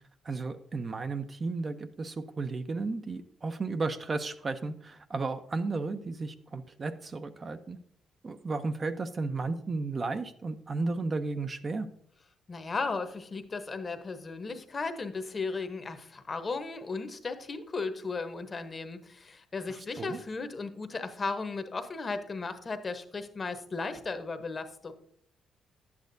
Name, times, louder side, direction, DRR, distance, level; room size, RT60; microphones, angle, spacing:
voice 1, 0.2-7.8 8.2-11.9 20.0-20.2, right 3 dB, 35° right, 9 dB, 0.5 m, -34 dB
voice 2, 12.5-24.9, left 4 dB, 35° left, 9 dB, 0.9 m, -35 dB
10.5 x 8.4 x 2.6 m, 0.65 s
cardioid pair, 90°, 0 cm